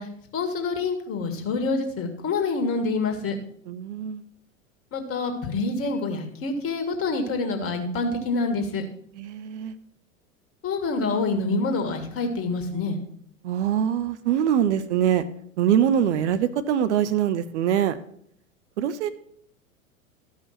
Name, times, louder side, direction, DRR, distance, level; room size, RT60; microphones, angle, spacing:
voice 1, 0.0-3.4 4.9-8.8 10.6-13.0, left 3 dB, 35° left, 5 dB, 2.1 m, -27 dB
voice 2, 3.7-4.2 9.1-9.7 13.4-15.2 15.6-18.0 18.8-19.1, right 9 dB, 55° right, 12 dB, 0.8 m, -23 dB
13.5 x 5.7 x 5.9 m, 0.67 s
figure-of-eight pair, 90°, 41 cm